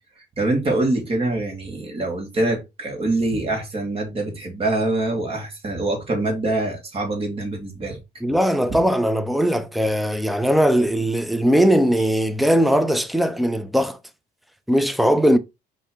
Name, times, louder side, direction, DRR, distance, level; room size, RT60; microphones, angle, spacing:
voice 1, 0.2-8.0 8.7-8.8, right 2 dB, 35° right, 1.8 m, -24 dB
voice 2, 8.2-14.0 14.7-15.4, equal, ahead, 0.5 m, -19 dB
5.4 x 2.8 x 3.5 m
cardioid pair, 110°, 17 cm